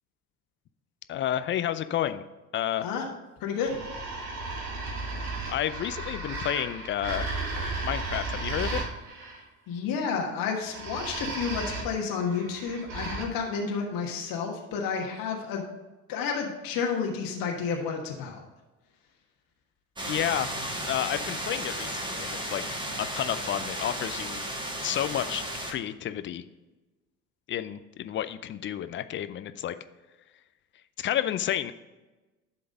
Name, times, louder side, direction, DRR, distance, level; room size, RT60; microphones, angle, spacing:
voice 1, 1.1-2.2 2.5-2.9 5.5-7.3 7.8-8.8 20.1-20.5 20.9-22.6 23.0-24.4 24.8-25.4 25.7-26.4 27.5-29.7 31.0-31.7, left 11 dB, 30° left, 11 dB, 0.4 m, -30 dB
voice 2, 3.4-3.7 9.7-15.6 16.1-18.4, left 6 dB, 50° left, 1 dB, 1.3 m, -31 dB
sound 1, 3.6-9.4 10.6-13.2, right 3 dB, 70° right, 1.7 m, -34 dB
sound 2, 20.0-25.7, right 1 dB, 10° right, 1.3 m, -34 dB
11.0 x 3.8 x 5.2 m, 1.1 s
figure-of-eight pair, 65°, 45 cm